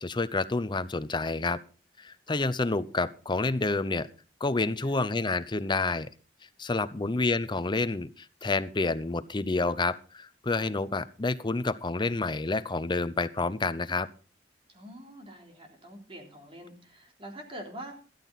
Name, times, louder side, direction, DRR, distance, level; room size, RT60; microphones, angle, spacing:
voice 1, 0.0-1.6 2.0-4.1 4.4-6.1 6.6-14.1, left 3 dB, 25° left, 14 dB, 0.6 m, -29 dB
voice 2, 6.8-7.2 14.7-17.9, right 1 dB, 30° right, 2 dB, 3.5 m, -45 dB
13.5 x 13.0 x 4.1 m, 0.37 s
head